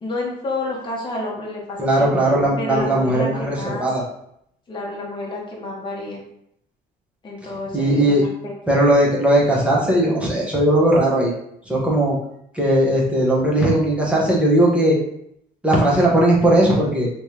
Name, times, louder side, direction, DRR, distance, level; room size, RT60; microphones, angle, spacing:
voice 1, 0.0-2.1 2.6-3.9 4.7-6.2 7.2-8.1 8.4-8.5, left 2 dB, 30° left, -3 dB, 1.2 m, -29 dB
voice 2, 1.8-4.0 7.7-8.2 8.7-11.3 11.7-12.2 12.5-15.0 15.6-17.1, right 1 dB, 5° right, -4 dB, 1.1 m, -18 dB
3.3 x 3.2 x 2.9 m, 0.73 s
cardioid pair, 110°, 17 cm